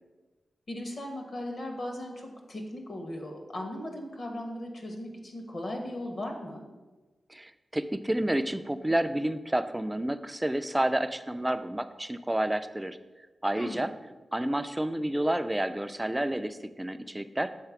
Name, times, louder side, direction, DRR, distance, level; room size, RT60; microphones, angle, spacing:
voice 1, 0.7-6.6 13.5-13.9, left 1 dB, 45° left, 3 dB, 1.2 m, -37 dB
voice 2, 7.3-13.0 13.4-13.9 14.3-17.5, right 1 dB, 10° right, 10 dB, 0.3 m, -30 dB
6.6 x 4.2 x 5.8 m, 1.2 s
wide cardioid pair, 150°, 0 cm